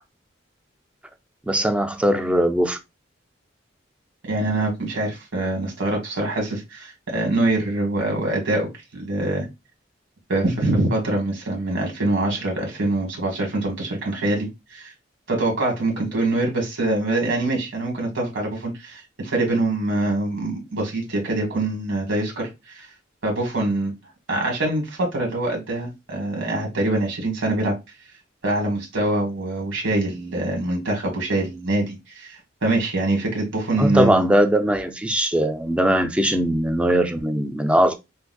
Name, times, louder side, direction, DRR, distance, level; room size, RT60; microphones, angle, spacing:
voice 1, 1.5-2.8 33.8-37.9, equal, 5° right, 0.4 m, -20 dB
voice 2, 4.2-9.5 10.3-14.9 15.3-22.5 22.7-22.9 23.2-23.9 24.3-27.7 28.4-34.2, right 2 dB, 75° right, 1.6 m, -24 dB
3.9 x 2.5 x 2.2 m
head